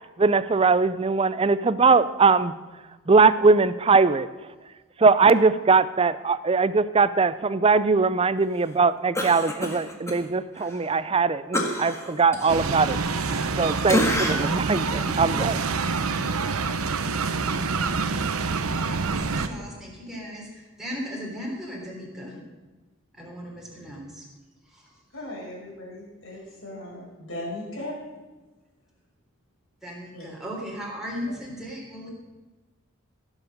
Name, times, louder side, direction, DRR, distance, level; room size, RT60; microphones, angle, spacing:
voice 1, 0.2-2.5 3.1-4.3 5.0-13.0 13.6-15.7, right 4 dB, 25° right, 15 dB, 0.4 m, -21 dB
Cough, 9.2-10.2 10.6-10.7 11.5-13.6 13.9-14.6 15.1-15.2, left 1 dB, 15° left, 1.6 m, -28 dB
sound 1, 12.5-19.5, right 4 dB, 90° right, 0.9 m, -27 dB
voice 2, 18.9-22.5 23.1-24.3 24.7-24.9 29.8-32.1, equal, ahead, -4 dB, 3.3 m, -37 dB
voice 3, 25.1-28.0 30.1-30.3, left 1 dB, 65° left, -2 dB, 5.0 m, -37 dB
16.0 x 7.3 x 6.5 m, 1.2 s
head